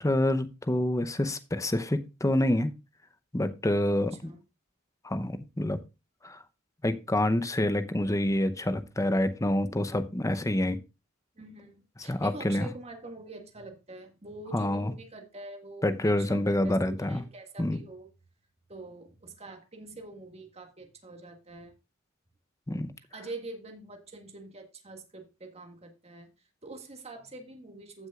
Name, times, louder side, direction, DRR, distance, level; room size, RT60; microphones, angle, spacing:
voice 1, 0.0-2.7 3.3-4.3 5.0-5.8 6.2-6.4 6.8-10.8 12.1-12.7 14.5-14.9 15.8-17.2 17.6-17.8 22.7-22.9, left 1 dB, 15° left, 0.7 m, -27 dB
voice 2, 4.0-4.4 11.4-18.1 18.7-21.7 23.1-26.3 26.6-28.1, right 2 dB, 30° right, 1.7 m, -45 dB
15.0 x 6.2 x 2.4 m
head